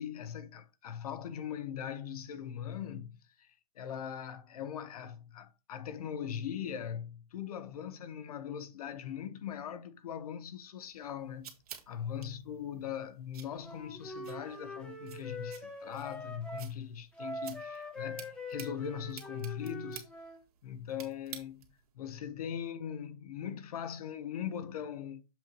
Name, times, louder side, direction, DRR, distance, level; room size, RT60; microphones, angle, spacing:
voice 1, 0.0-3.5 3.8-11.5 11.9-20.1 20.6-21.6 21.9-25.2, left 9 dB, 85° left, 1.0 m, -40 dB
sound 1, 10.9-21.9, right 9 dB, 85° right, 1.8 m, -53 dB
Wind instrument woodwind instrument, 13.6-16.7 17.1-20.4, left 1 dB, 5° left, 1.1 m, -43 dB
7.5 x 3.0 x 5.3 m
supercardioid pair, 160°, 19 cm